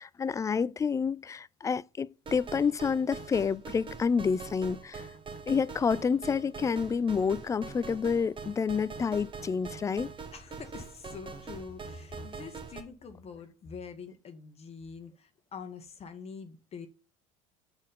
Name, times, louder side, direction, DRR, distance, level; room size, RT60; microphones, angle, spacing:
voice 1, 0.0-5.1 5.5-10.1, left 6 dB, 20° left, 0.3 m, -29 dB
sound 1, 2.3-12.8, right 4 dB, 30° right, 1.4 m, -43 dB
voice 2, 10.3-16.9, left 5 dB, 35° left, 1.2 m, -45 dB
7.1 x 4.4 x 5.1 m
hypercardioid pair, 80°, 17 cm